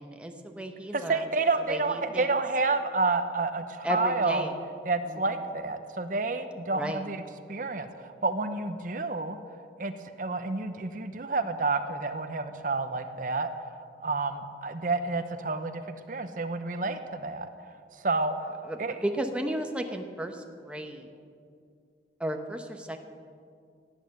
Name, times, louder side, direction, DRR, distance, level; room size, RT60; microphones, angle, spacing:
voice 1, 0.0-1.2 1.7-2.3 3.8-4.5 5.1-5.4 6.7-7.0 18.6-21.1 22.2-23.0, right 1 dB, 5° right, 4 dB, 1.0 m, -34 dB
voice 2, 0.9-4.5 4.9-7.2 7.5-9.4 9.8-9.9 10.2-13.5 14.0-17.5 18.0-18.3 18.8-19.0, right 3 dB, 45° right, 9 dB, 0.8 m, -29 dB
16.5 x 9.5 x 7.7 m, 2.3 s
head